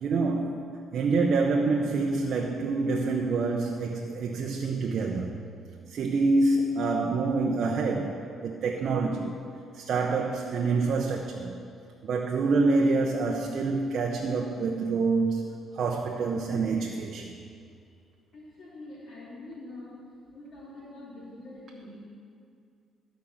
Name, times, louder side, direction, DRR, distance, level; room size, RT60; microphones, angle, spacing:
voice 1, 0.0-5.4 5.9-9.4 9.7-11.6 12.0-15.5 15.8-17.3, right 3 dB, 65° right, 1 dB, 0.8 m, -27 dB
voice 2, 18.3-19.9 20.3-22.0, left 2 dB, 60° left, -8 dB, 2.9 m, -45 dB
13.0 x 5.3 x 7.2 m, 2.4 s
cardioid pair, 90°, 0 cm